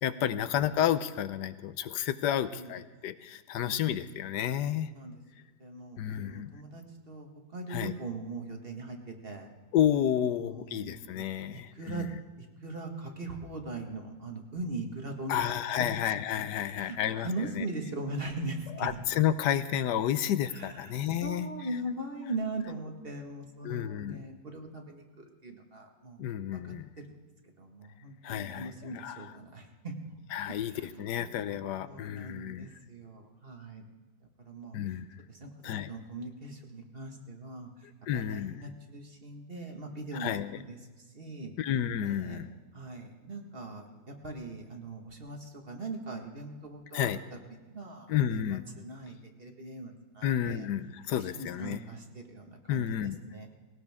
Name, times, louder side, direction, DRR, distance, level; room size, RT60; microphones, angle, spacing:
voice 1, 0.0-4.9 6.0-6.5 7.7-7.9 9.7-12.1 15.3-17.6 18.8-21.5 23.6-24.2 26.2-26.9 28.2-29.3 30.3-32.7 34.7-35.1 35.6-35.9 38.1-38.6 40.2-40.6 41.6-42.5 46.9-47.2 48.1-48.6 50.2-51.8 52.7-53.2, left 10 dB, 85° left, 13 dB, 1.3 m, -31 dB
voice 2, 2.3-2.7 3.6-4.0 4.8-5.1 5.6-9.5 10.3-12.1 12.4-15.3 15.8-16.2 16.6-19.0 20.5-27.0 27.6-30.1 30.5-31.3 31.7-33.9 34.4-34.8 35.3-35.5 35.9-41.5 42.0-42.4 42.7-50.7 51.2-52.9 53.3-53.5, right 2 dB, 35° right, 2 dB, 1.8 m, -41 dB
20.0 x 18.0 x 3.6 m, 1.2 s
omnidirectional pair, 1.8 m